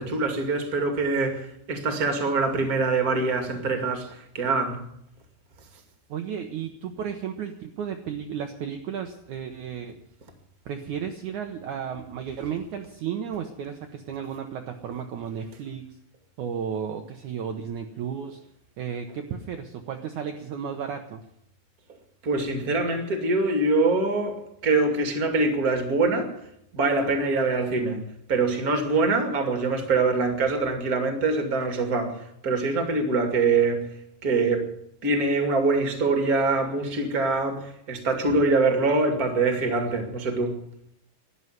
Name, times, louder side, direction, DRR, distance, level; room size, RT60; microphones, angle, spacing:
voice 1, 0.0-4.8 22.2-26.4 26.7-28.0 28.3-33.9 34.2-34.7 35.0-40.6, right 3 dB, 30° right, 2.2 m, -24 dB
voice 2, 6.1-10.0 10.7-15.9 16.4-18.4 18.8-21.2, right 8 dB, 65° right, 2.2 m, -33 dB
12.5 x 11.0 x 9.4 m
omnidirectional pair, 4.4 m